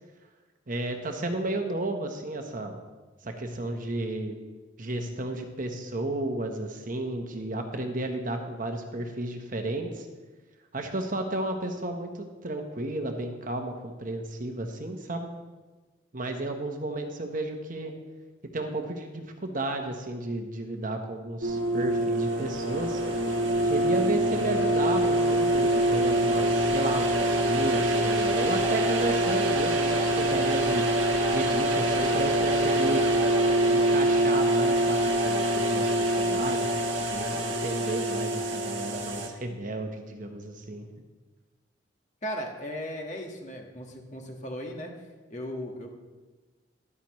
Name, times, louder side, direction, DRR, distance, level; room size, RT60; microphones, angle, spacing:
voice 1, 0.7-2.7 3.2-4.4 4.8-10.1 10.7-15.3 16.1-17.9 18.5-23.0 23.6-30.9 31.3-33.1 33.7-40.8, right 2 dB, 45° right, 4 dB, 1.1 m, -33 dB
sound 1, 21.4-39.3, right 1 dB, 80° right, 1.4 m, -25 dB
voice 2, 42.2-44.9 45.3-45.9, equal, 40° left, 1 dB, 1.7 m, -36 dB
13.0 x 11.0 x 3.1 m, 1.2 s
head